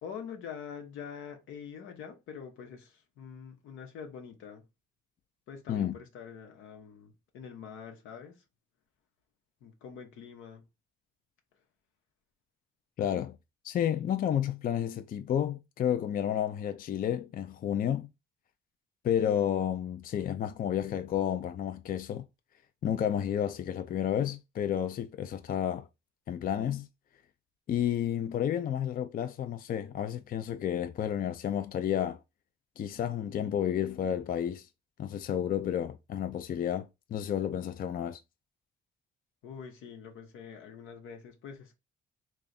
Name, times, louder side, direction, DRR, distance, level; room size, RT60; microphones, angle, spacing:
voice 1, 0.0-4.6 5.5-8.4 9.6-10.6 13.0-13.2 39.4-41.8, left 7 dB, 90° left, 1.0 m, -45 dB
voice 2, 13.0-13.3 13.6-18.1 19.0-22.2 22.8-25.9 26.3-26.9 27.7-32.2 32.8-34.7 35.0-38.2, left 9 dB, 45° left, 0.4 m, -31 dB
3.3 x 2.4 x 3.9 m
cardioid pair, 90°, 20 cm